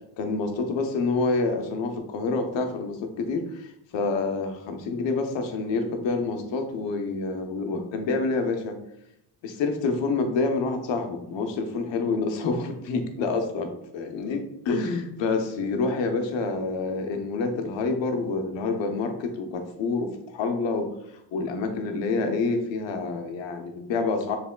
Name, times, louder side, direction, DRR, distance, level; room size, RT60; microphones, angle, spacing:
voice 1, 0.2-8.8 9.4-20.9 21.3-24.4, left 3 dB, 70° left, 5 dB, 0.9 m, -27 dB
6.8 x 3.5 x 2.2 m, 0.79 s
cardioid pair, 120°, 46 cm